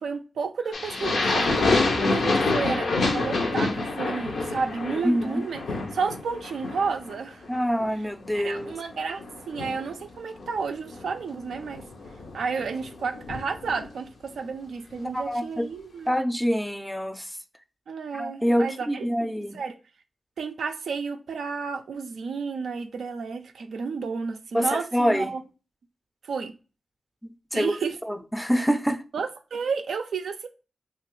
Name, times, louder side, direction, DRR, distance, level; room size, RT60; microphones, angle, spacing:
voice 1, 0.0-5.6 5.9-7.4 8.3-11.8 12.3-16.1 17.9-19.7 20.4-25.4 26.2-26.5 27.5-28.0 29.1-30.5, right 5 dB, 90° right, 0.3 m, -31 dB
sound 1, 0.7-7.2 7.4-7.9 8.3-13.9, left 3 dB, 85° left, 0.5 m, -28 dB
voice 2, 5.0-5.5 7.5-8.8 15.1-15.7 16.1-17.4 18.1-19.6 24.5-25.3 27.2-27.8 28.1-29.0, equal, 5° left, 0.4 m, -26 dB
2.9 x 2.4 x 3.0 m
cardioid pair, 45°, 0 cm